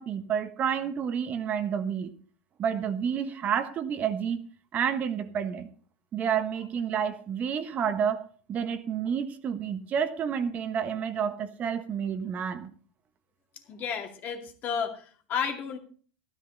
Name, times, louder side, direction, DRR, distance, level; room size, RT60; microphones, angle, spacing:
voice 1, 0.0-2.1 2.6-4.4 4.7-5.7 6.1-8.2 8.5-12.7, right 7 dB, 40° right, 9 dB, 1.4 m, -29 dB
voice 2, 13.7-15.8, left 7 dB, 45° left, 4 dB, 2.4 m, -32 dB
13.0 x 13.0 x 4.1 m, 0.43 s
hypercardioid pair, 100°, 4 cm